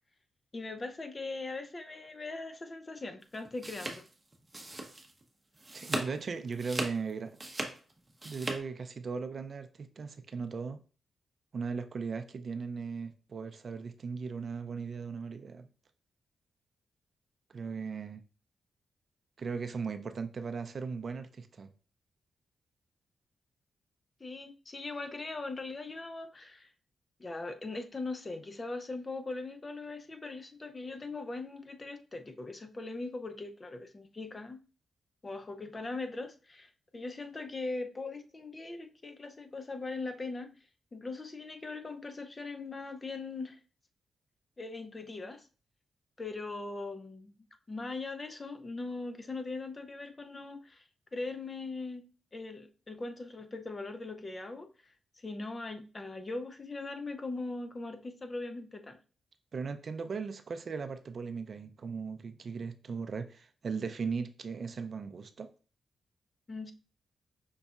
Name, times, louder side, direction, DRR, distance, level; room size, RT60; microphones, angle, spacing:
voice 1, 0.5-4.0 24.2-26.7 27.2-34.6 35.2-40.5 40.9-43.6 44.6-45.5 46.2-47.3 47.7-59.0 66.5-66.7, left 3 dB, 30° left, 0.5 m, -40 dB
sound 1, 3.3-5.2 5.5-6.2 6.5-8.6, right 2 dB, 20° right, 0.9 m, -38 dB
voice 2, 5.7-7.4 8.2-10.8 11.5-15.7 17.5-18.2 19.4-21.7 59.5-65.5, right 5 dB, 50° right, 0.4 m, -38 dB
5.3 x 3.9 x 2.4 m
cardioid pair, 110°, 0 cm